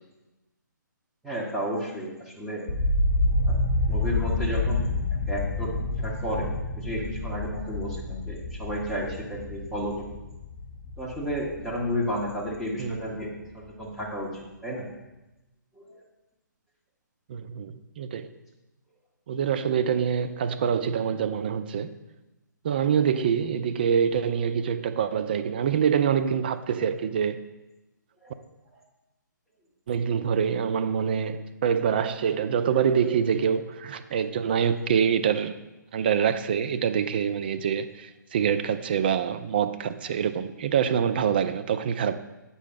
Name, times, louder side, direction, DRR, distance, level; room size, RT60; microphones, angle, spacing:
voice 1, 1.2-2.6 3.4-3.6 3.9-4.9 5.3-6.5 6.8-10.0 11.0-13.3 13.5-14.9 15.8-15.9 28.2-28.3, equal, ahead, -6 dB, 1.0 m, -32 dB
sound 1, 2.7-12.7 13.0-13.7, left 2 dB, 40° left, 0.6 m, -28 dB
voice 2, 17.3-18.3 19.3-21.9 22.6-27.5 29.9-35.6 35.9-42.2, right 7 dB, 30° right, 9 dB, 0.3 m, -25 dB
8.1 x 5.5 x 3.8 m, 1.0 s
figure-of-eight pair, 135°, 10 cm